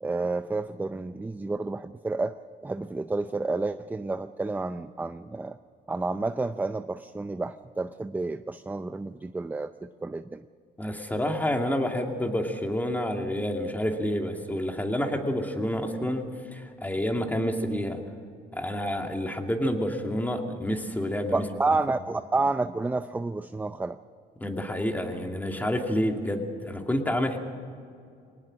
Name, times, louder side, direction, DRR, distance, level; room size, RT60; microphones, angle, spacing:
voice 1, 0.0-5.6 5.9-10.4 21.3-24.0, right 3 dB, 10° right, 11 dB, 0.5 m, -30 dB
voice 2, 10.8-16.2 16.5-18.0 18.6-21.4 24.4-27.4, equal, 10° left, 3 dB, 2.5 m, -28 dB
23.0 x 19.0 x 6.4 m, 2.4 s
cardioid pair, 110°, 17 cm